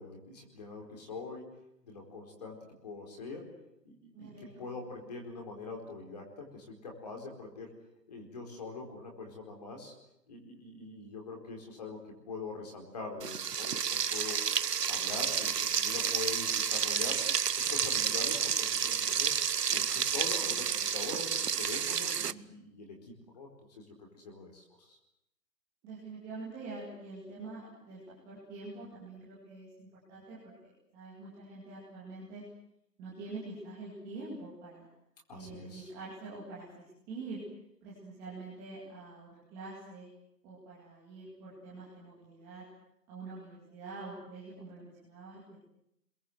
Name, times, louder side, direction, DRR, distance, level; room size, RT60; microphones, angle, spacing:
voice 1, 0.0-1.5 1.8-3.5 3.8-7.7 8.1-9.9 10.3-12.0 12.3-14.4 14.9-17.2 17.6-19.3 19.7-23.8 24.1-25.0 35.3-35.9, left 3 dB, 25° left, 2 dB, 4.6 m, -43 dB
voice 2, 4.1-4.6 20.4-20.5 25.8-28.0 28.2-32.4 33.0-34.9 35.3-36.7 37.1-37.4 37.8-40.1 40.4-42.7 43.1-45.6, right 3 dB, 5° right, -8 dB, 2.3 m, -45 dB
Frying (food), 13.2-22.3, right 7 dB, 70° right, 1.0 m, -30 dB
27.0 x 22.5 x 7.9 m, 0.79 s
hypercardioid pair, 175°, 49 cm